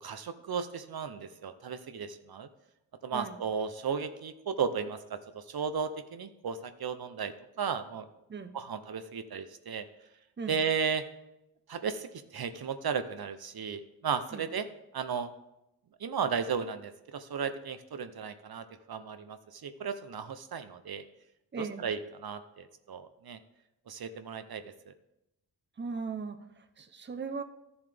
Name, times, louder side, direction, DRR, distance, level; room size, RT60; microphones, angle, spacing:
voice 1, 0.0-2.5 3.0-8.1 8.5-9.8 10.5-11.0 11.7-14.7 14.9-15.3 16.0-21.0 21.6-23.4 23.9-24.9, right 6 dB, 65° right, 10 dB, 0.7 m, -35 dB
voice 2, 21.5-21.8 25.8-27.4, right 5 dB, 25° right, 8 dB, 0.7 m, -38 dB
13.0 x 7.1 x 3.4 m, 0.89 s
wide cardioid pair, 75°, 41 cm